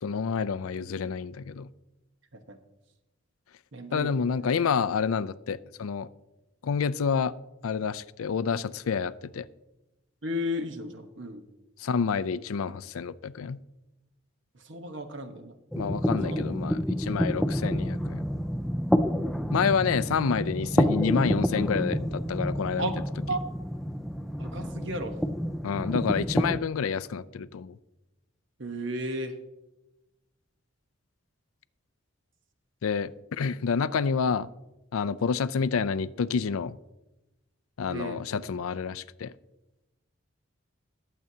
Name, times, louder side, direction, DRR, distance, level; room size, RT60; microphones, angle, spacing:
voice 1, 0.0-1.7 3.9-6.1 6.6-7.3 7.6-9.5 11.8-13.6 15.8-18.2 19.5-22.9 25.6-27.8 32.8-34.5 34.9-36.8 37.8-39.3, left 6 dB, 90° left, 15 dB, 0.4 m, -28 dB
voice 2, 3.7-4.4 10.2-11.4 14.6-15.5 16.1-16.4 22.8-22.9 23.3-23.4 24.4-25.1 28.6-29.3 37.9-38.2, equal, 60° right, 7 dB, 1.1 m, -34 dB
sound 1, 15.7-26.6, equal, ahead, 0.3 m, -28 dB
21.0 x 7.7 x 2.8 m, 1.0 s
head